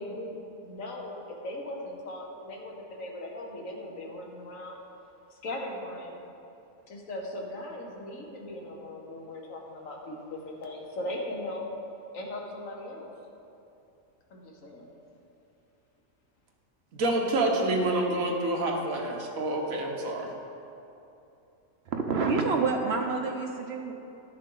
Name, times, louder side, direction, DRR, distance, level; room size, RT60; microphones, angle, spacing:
voice 1, 0.0-4.8 5.3-6.3 6.9-11.6 12.1-13.1 14.3-14.9, left 1 dB, 70° left, 0 dB, 1.4 m, -39 dB
voice 2, 16.9-20.3, right 2 dB, 80° right, 1 dB, 1.4 m, -27 dB
voice 3, 21.9-23.9, right 4 dB, 60° right, 3 dB, 0.8 m, -28 dB
12.0 x 6.5 x 3.8 m, 2.8 s
omnidirectional pair, 1.4 m